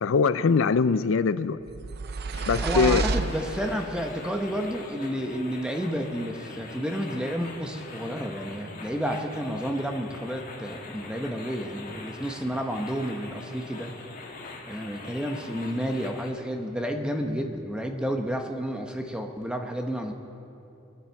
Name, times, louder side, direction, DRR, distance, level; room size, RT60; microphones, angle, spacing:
voice 1, 0.0-1.6 2.5-3.0, left 5 dB, 70° left, 14 dB, 0.4 m, -22 dB
sound 1, 1.7-4.1, right 4 dB, 45° right, 0.5 m, -30 dB
sound 2, 2.3-16.3, left 2 dB, 40° left, 2.1 m, -43 dB
voice 2, 2.6-13.9 14.7-20.1, equal, 5° right, 3 dB, 1.0 m, -31 dB
29.0 x 10.0 x 4.6 m, 2.8 s
head